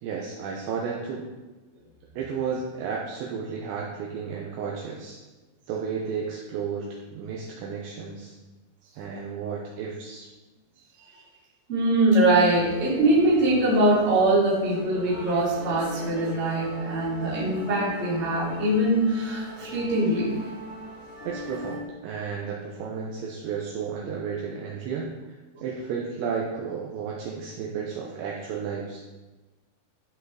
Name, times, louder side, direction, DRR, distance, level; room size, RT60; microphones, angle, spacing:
voice 1, 0.0-1.2 2.2-5.2 5.7-8.3 9.0-10.3 21.2-25.1 25.6-29.0, right 6 dB, 75° right, -2 dB, 2.8 m, -33 dB
voice 2, 11.7-20.3, right 1 dB, 20° right, -7 dB, 2.0 m, -22 dB
sound 1, 12.2-21.8, left 1 dB, 75° left, 5.3 m, -40 dB
12.5 x 5.7 x 4.0 m, 1.2 s
omnidirectional pair, 6.0 m